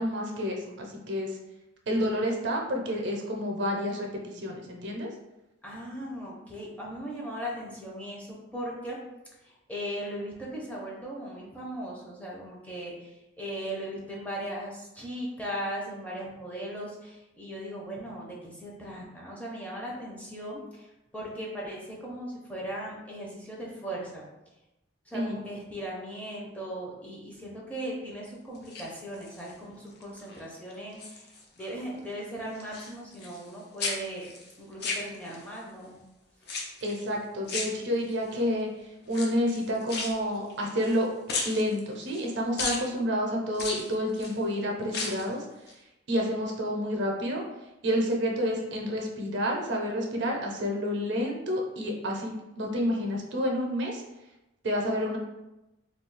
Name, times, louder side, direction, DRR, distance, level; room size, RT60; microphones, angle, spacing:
voice 1, 0.0-1.4 1.9-5.1 25.1-25.4 36.8-38.7 39.1-41.1 41.4-45.4 46.1-47.4 47.8-54.0 54.6-55.2, equal, 65° right, 0 dB, 0.5 m, -29 dB
voice 2, 5.6-9.0 9.4-20.9 21.1-24.2 25.1-34.3 34.6-35.9, equal, 5° left, -4 dB, 0.5 m, -38 dB
sound 1, 28.6-29.5 30.0-30.4 30.7-31.7 32.0-33.5 33.8-35.6 36.4-37.0 37.5-38.3 39.1-41.0 41.3-42.3 42.6-42.9 43.5-44.4 44.8-45.3 45.7-45.8, left 3 dB, 55° left, 0.5 m, -35 dB
2.3 x 2.3 x 3.9 m, 0.96 s
head